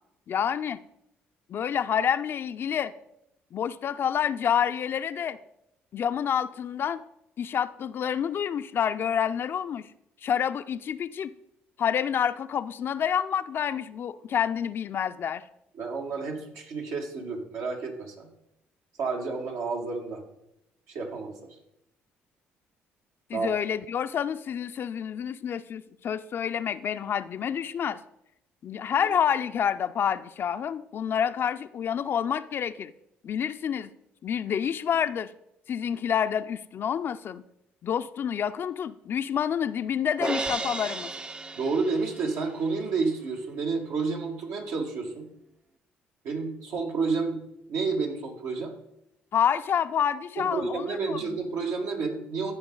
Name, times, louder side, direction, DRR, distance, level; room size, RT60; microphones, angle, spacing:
voice 1, 0.3-0.8 1.5-2.9 3.5-5.4 5.9-7.0 7.4-9.9 10.2-11.3 11.8-15.4 23.3-28.0 28.6-32.9 33.2-33.9 34.2-35.3 35.7-37.4 37.8-41.1 49.3-51.4, left 8 dB, 55° left, 10 dB, 0.4 m, -28 dB
voice 2, 15.7-18.3 19.0-20.2 20.9-21.6 23.3-23.5 41.5-45.3 46.2-47.4 47.7-48.7 50.4-52.5, right 4 dB, 80° right, 1 dB, 1.8 m, -30 dB
Crash cymbal, 40.2-42.5, right 3 dB, 20° right, 0.4 m, -33 dB
14.5 x 4.8 x 3.8 m, 0.82 s
supercardioid pair, 70°, 5 cm